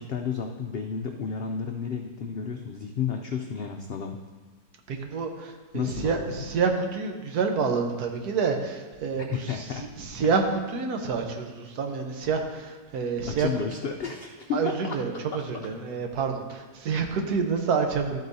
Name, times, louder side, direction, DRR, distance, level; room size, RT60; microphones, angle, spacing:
voice 1, 0.0-4.2 5.7-6.3 9.2-9.9 13.3-15.0 15.3-15.4, left 6 dB, 85° left, 3 dB, 0.5 m, -32 dB
voice 2, 4.9-13.5 14.5-18.2, right 5 dB, 75° right, 4 dB, 1.4 m, -28 dB
12.5 x 7.8 x 2.7 m, 1.3 s
omnidirectional pair, 1.7 m